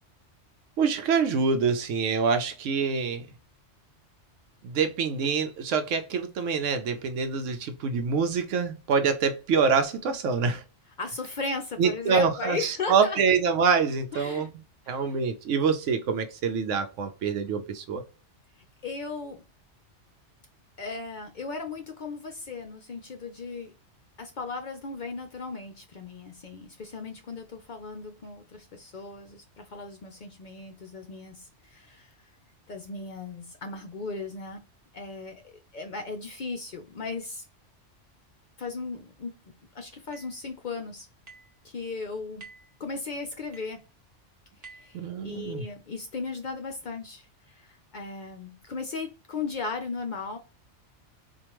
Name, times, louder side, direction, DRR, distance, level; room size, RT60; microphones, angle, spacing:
voice 1, 0.8-3.3 4.6-10.6 11.8-14.5 14.9-18.0 44.9-45.6, right 5 dB, 85° right, 1.0 m, -25 dB
voice 2, 11.0-13.2 14.1-14.5 14.8-15.1 18.6-19.4 20.8-23.7 24.2-32.1 32.7-34.7 34.9-37.4 38.6-39.4 39.7-41.1 41.6-42.5 42.8-43.8 44.6-50.4, left 4 dB, 55° left, 0.5 m, -37 dB
sound 1, 40.1-40.4 41.3-41.6 42.4-42.8 43.5-43.8 44.6-45.0, right 4 dB, 50° right, 1.2 m, -49 dB
4.5 x 2.5 x 2.9 m
omnidirectional pair, 1.2 m